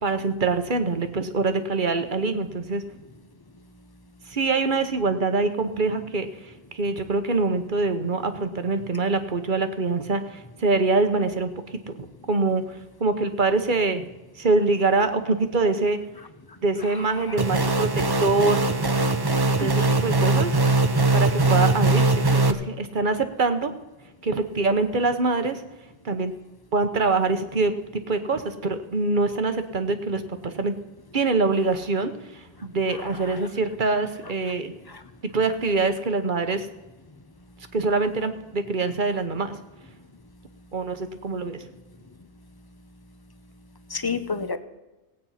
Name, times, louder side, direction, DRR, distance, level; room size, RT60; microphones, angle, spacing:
voice 1, 0.0-2.8 4.3-11.5 11.9-12.0 12.3-14.0 14.4-16.0 16.6-17.9 18.2-18.6 19.6-20.6 21.1-23.7 24.2-25.6 26.0-26.3 26.7-27.7 28.1-30.7 31.1-34.7 35.3-36.7 37.7-39.6 40.7-41.6, right 3 dB, 50° right, 9 dB, 1.1 m, -24 dB
sound 1, 17.4-22.5, right 2 dB, 25° right, 0.6 m, -21 dB
voice 2, 19.6-20.1 33.3-33.4 34.9-35.0 43.9-44.6, left 4 dB, 25° left, 11 dB, 0.7 m, -31 dB
17.0 x 8.7 x 5.7 m, 1.1 s
omnidirectional pair, 1.1 m